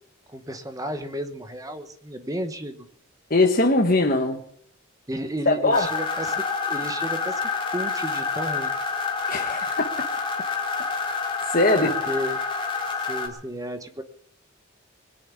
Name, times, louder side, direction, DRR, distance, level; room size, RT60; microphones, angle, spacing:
voice 1, 0.3-2.9 5.1-7.4 7.7-8.7 12.1-12.5 13.1-14.0, equal, 15° right, 1.1 m, -33 dB
voice 2, 3.3-4.4 5.5-5.9 9.3-9.9 11.5-12.0, left 2 dB, 40° left, 1.2 m, -21 dB
sound 1, 5.7-13.3, left 4 dB, 25° left, 2.7 m, -28 dB
21.0 x 7.1 x 9.8 m
head